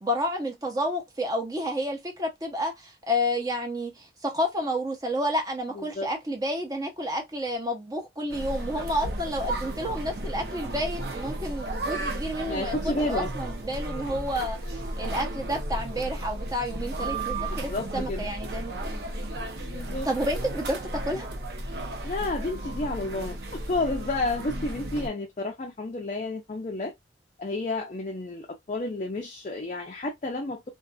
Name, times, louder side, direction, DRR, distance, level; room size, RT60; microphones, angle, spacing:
voice 1, 0.0-19.0 20.0-21.3, equal, 20° right, 0.7 m, -30 dB
voice 2, 5.8-6.1 12.4-13.3 15.3-15.5 17.5-18.3 19.6-20.1 22.0-23.4 23.7-26.9 27.4-30.7, left 2 dB, 40° left, 0.5 m, -31 dB
sound 1, 8.3-25.1, right 1 dB, 65° right, 0.6 m, -34 dB
2.5 x 2.5 x 2.2 m
head